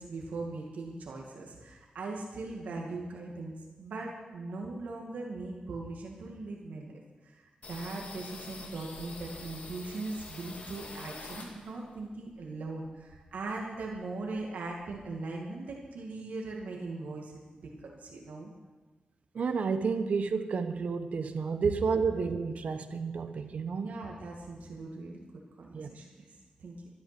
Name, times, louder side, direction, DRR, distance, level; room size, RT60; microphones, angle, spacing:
voice 1, 0.0-3.5 3.8-18.5 23.8-25.3 25.6-26.3 26.6-26.8, right 3 dB, 90° right, -1 dB, 2.1 m, -40 dB
sound 1, 7.6-12.0 12.3-13.7 14.0-14.1 14.3-15.1, left 3 dB, 60° left, 2.4 m, -46 dB
voice 2, 19.3-24.0 25.7-25.9, right 5 dB, 60° right, 9 dB, 1.0 m, -31 dB
13.5 x 12.0 x 6.0 m, 1.2 s
wide cardioid pair, 125°, 3 cm